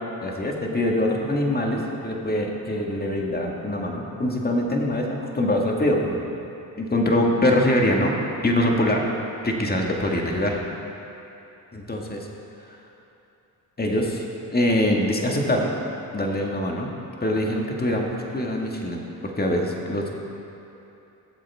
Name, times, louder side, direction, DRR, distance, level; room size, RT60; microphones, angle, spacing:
voice 1, 0.2-6.2 6.8-8.1 8.4-9.0 9.4-10.7 11.7-12.2 13.8-14.2 14.5-15.7 16.1-16.9 17.2-20.1, left 1 dB, 20° left, 0 dB, 1.9 m, -23 dB
17.0 x 7.4 x 3.6 m, 2.9 s
supercardioid pair, 60°, 42 cm